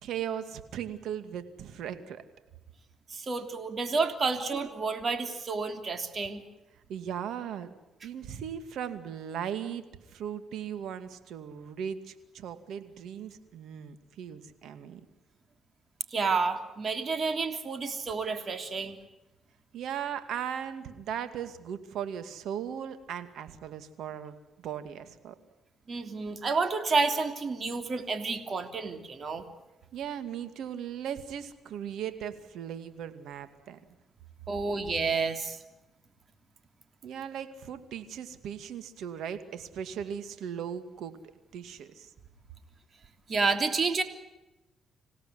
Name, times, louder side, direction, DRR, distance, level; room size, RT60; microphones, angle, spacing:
voice 1, 0.0-2.2 6.9-7.7 8.0-15.0 19.7-25.4 29.9-33.8 37.0-41.2 41.5-42.1, right 9 dB, 80° right, 10 dB, 2.3 m, -38 dB
voice 2, 3.1-6.4 16.1-19.0 25.9-29.4 34.5-35.6 43.3-44.0, right 4 dB, 40° right, 7 dB, 3.2 m, -30 dB
27.0 x 17.0 x 9.6 m, 1.0 s
cardioid pair, 90°, 0 cm